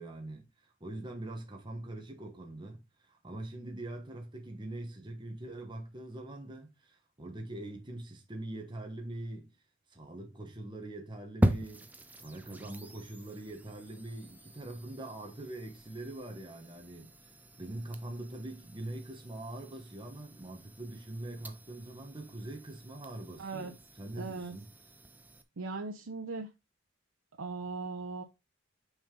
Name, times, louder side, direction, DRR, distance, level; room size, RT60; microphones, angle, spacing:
voice 1, 0.0-9.5 9.9-11.9 12.2-17.3 17.6-24.7, right 1 dB, 25° right, 1.3 m, -43 dB
sound 1, 11.4-25.4, right 1 dB, 10° right, 0.6 m, -40 dB
voice 2, 23.4-23.7 24.1-24.5 25.6-26.5 27.4-28.2, right 3 dB, 85° right, 0.7 m, -38 dB
6.1 x 5.3 x 3.8 m
head